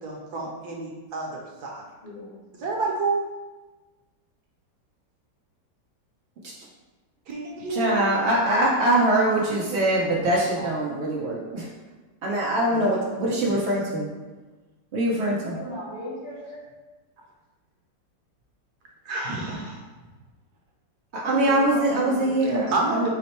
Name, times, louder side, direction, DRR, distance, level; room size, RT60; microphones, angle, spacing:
voice 1, 0.0-1.8 2.6-3.2 7.3-8.1 9.7-10.1 10.6-10.7 12.7-12.8 13.4-13.6 19.0-19.8 22.7-23.1, right 3 dB, 65° right, -2 dB, 1.2 m, -29 dB
voice 2, 2.0-2.4 15.3-16.6 21.4-22.5, left 1 dB, 40° left, -7 dB, 1.2 m, -37 dB
voice 3, 7.7-11.7 12.2-14.1 14.9-15.5 21.1-23.1, right 1 dB, 80° right, -5 dB, 0.6 m, -23 dB
5.0 x 2.1 x 4.2 m, 1.2 s
omnidirectional pair, 2.0 m